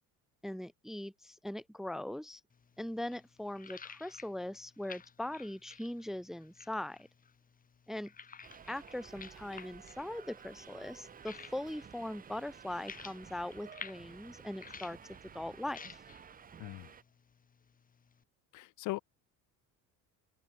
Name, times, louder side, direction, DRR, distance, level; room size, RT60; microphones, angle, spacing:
voice 1, 0.4-2.4 2.8-7.0 7.9-8.1 8.7-15.0 15.3-15.8, left 1 dB, ahead, 0.6 m, -40 dB
sound 1, 2.5-18.2, left 6 dB, 25° left, 1.6 m, -54 dB
Subway metro underground, 8.4-17.0, right 7 dB, 25° right, 0.9 m, -53 dB
voice 2, 16.6-16.9 18.5-19.0, left 19 dB, 60° left, 0.6 m, -39 dB
open air
cardioid pair, 130°, 35 cm